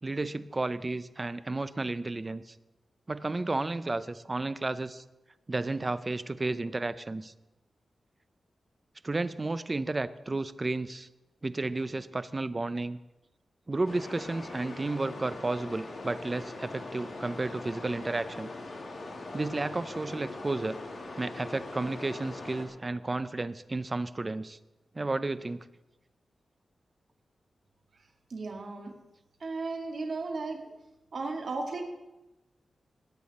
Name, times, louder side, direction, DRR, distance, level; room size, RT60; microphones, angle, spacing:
voice 1, 0.0-2.5 3.1-5.0 5.5-7.3 9.0-11.1 11.4-13.0 13.7-18.5 19.3-20.8 21.2-24.6 24.9-25.6, right 2 dB, 25° right, 13 dB, 0.5 m, -32 dB
sound 1, 13.8-22.6, left 2 dB, 55° left, 2.2 m, -41 dB
voice 2, 28.3-28.9 29.4-30.7 31.1-31.8, right 3 dB, 60° right, 1 dB, 2.0 m, -35 dB
20.0 x 8.5 x 4.2 m, 1.0 s
wide cardioid pair, 135°, 0 cm